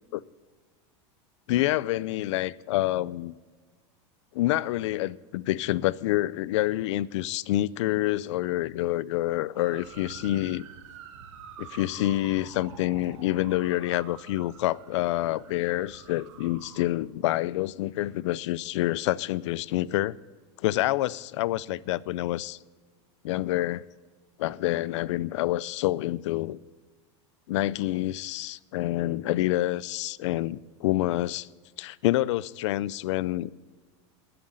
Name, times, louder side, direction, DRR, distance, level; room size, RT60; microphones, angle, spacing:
voice 1, 1.5-3.4 4.3-10.6 11.6-20.2 20.6-22.6 23.2-23.8 24.4-26.6 27.5-31.5 31.8-33.5, left 15 dB, 75° left, 22 dB, 0.4 m, -27 dB
sound 1, 9.6-16.9, right 8 dB, 90° right, 1.5 m, -47 dB
10.5 x 7.8 x 8.9 m, 1.5 s
supercardioid pair, 160°, 15 cm